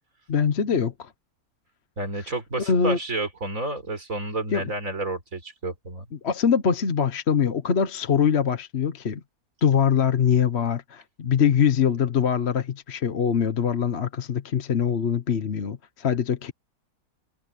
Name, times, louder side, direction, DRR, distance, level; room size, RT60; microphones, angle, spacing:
voice 1, 0.3-1.1 2.7-3.0 4.5-4.6 6.2-9.2 9.6-16.5, left 7 dB, 50° left, 1.2 m, -23 dB
voice 2, 2.0-6.1, right 2 dB, 60° right, 4.7 m, -30 dB
omnidirectional pair, 1.6 m